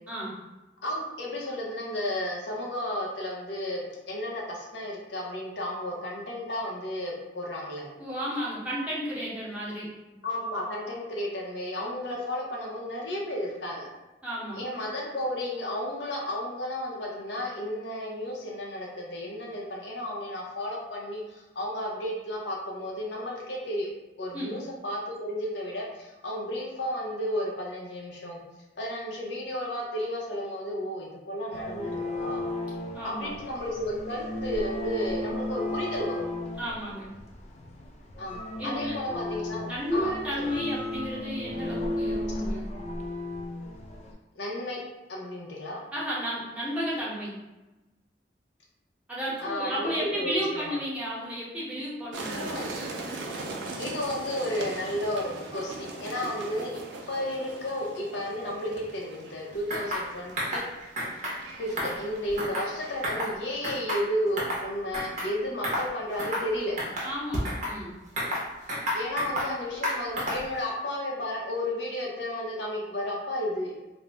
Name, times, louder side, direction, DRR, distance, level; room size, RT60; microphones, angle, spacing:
voice 1, 0.8-7.9 10.2-13.9 14.5-23.9 24.2-28.4 28.8-32.4 33.0-36.2 38.2-40.5 44.4-44.8 45.1-45.9 49.4-50.6 52.3-52.7 53.8-56.8 57.1-60.7 61.6-66.7 68.9-73.7, left 1 dB, 80° left, -2 dB, 0.7 m, -33 dB
voice 2, 8.0-9.9 14.2-14.6 24.3-24.5 32.9-33.3 36.6-37.1 38.6-39.0 39.6-42.7 45.9-47.3 49.1-52.6 67.0-68.0, equal, 10° right, -8 dB, 0.8 m, -33 dB
sound 1, 31.5-44.1, left 1 dB, 40° left, 0.4 m, -34 dB
sound 2, 52.1-63.3, right 2 dB, 80° right, 0.5 m, -40 dB
sound 3, 59.7-60.1 60.4-60.7 61.0-61.4 61.7-62.7 63.0-63.3 63.6-64.6 64.9-65.3 65.6-65.9 66.2-66.5 66.8-67.8 68.2-69.5 69.8-70.5, equal, 45° right, 0.7 m, -31 dB
2.5 x 2.0 x 3.3 m, 1.1 s
head